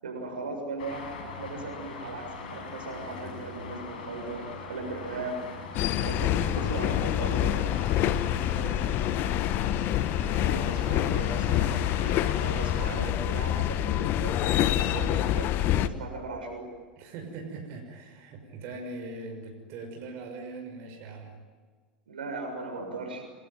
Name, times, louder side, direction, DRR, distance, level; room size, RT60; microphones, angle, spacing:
voice 1, 0.0-5.4 6.0-7.7 10.2-16.7 22.1-23.2, right 3 dB, 80° right, 3 dB, 6.8 m, -38 dB
Traffic noise roadway noise, 0.8-12.9, left 4 dB, 65° left, 7.5 m, -41 dB
sound 1, 5.7-15.9, left 12 dB, 45° left, 1.4 m, -26 dB
voice 2, 8.3-9.3 17.0-21.3, right 3 dB, 50° right, 3 dB, 6.1 m, -41 dB
29.0 x 21.5 x 9.3 m, 1.5 s
figure-of-eight pair, 85°, 5 cm